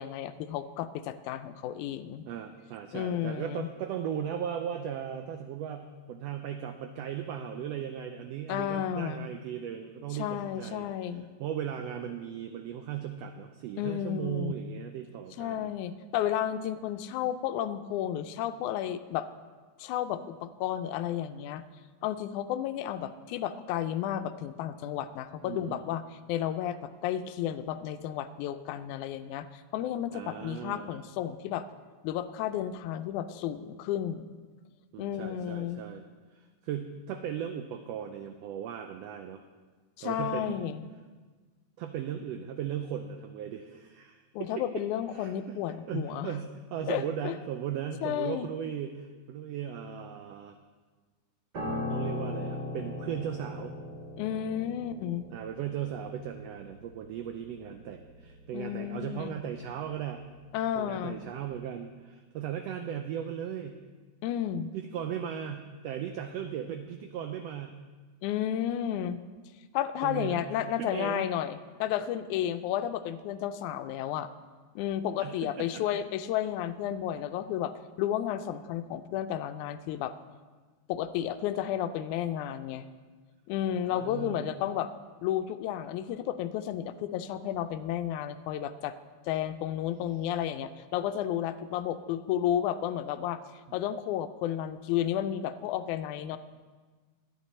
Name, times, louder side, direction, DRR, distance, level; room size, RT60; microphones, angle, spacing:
voice 1, 0.0-2.2 2.9-3.7 8.5-9.3 10.1-11.3 13.8-14.5 15.4-19.3 19.8-21.6 22.0-26.0 26.3-31.7 32.0-34.3 35.0-35.8 40.0-40.9 44.3-46.3 46.9-47.3 48.0-48.5 54.2-55.3 58.5-59.3 60.5-61.2 64.2-64.7 68.2-69.2 69.7-74.3 74.8-77.7 78.0-80.1 80.9-82.9 83.5-84.9 85.2-88.9 89.3-93.4 93.7-96.4, left 11 dB, 85° left, 11 dB, 2.0 m, -32 dB
voice 2, 2.2-10.9 11.4-15.7 25.4-25.8 30.1-30.9 34.9-36.0 36.3-39.4 40.0-40.7 41.8-44.6 45.1-50.6 51.9-53.7 55.3-60.2 60.7-63.8 64.7-67.8 70.0-71.3 75.2-75.8 83.7-84.6 93.7-93.8, right 9 dB, 90° right, 7 dB, 1.4 m, -37 dB
Piano, 51.5-60.9 61.2-61.5, left 1 dB, 40° right, 1.8 m, -40 dB
11.5 x 9.8 x 4.2 m, 1.4 s
omnidirectional pair, 3.4 m